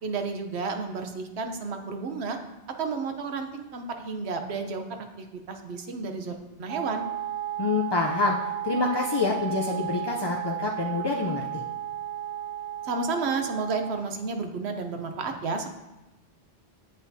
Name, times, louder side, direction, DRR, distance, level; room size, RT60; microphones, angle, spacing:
voice 1, 0.0-2.4 2.8-7.0 12.8-15.7, right 4 dB, 90° right, 6 dB, 1.0 m, -32 dB
Wind instrument woodwind instrument, 6.7-14.1, right 12 dB, 10° right, 1.9 m, -34 dB
voice 2, 7.6-11.6, left 3 dB, 45° left, 0 dB, 0.3 m, -27 dB
8.2 x 7.4 x 2.7 m, 1.1 s
omnidirectional pair, 1.1 m